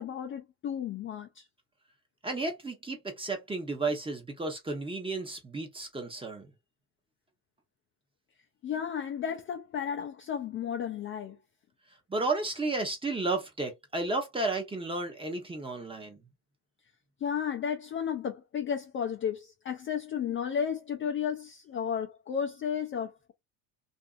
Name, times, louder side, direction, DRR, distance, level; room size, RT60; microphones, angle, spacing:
voice 1, 0.0-1.4 8.6-11.4 17.2-23.3, left 8 dB, 30° left, 0.4 m, -33 dB
voice 2, 2.2-6.5 12.1-16.2, right 3 dB, 10° right, 0.8 m, -33 dB
2.6 x 2.6 x 2.4 m
supercardioid pair, 110°, 45 cm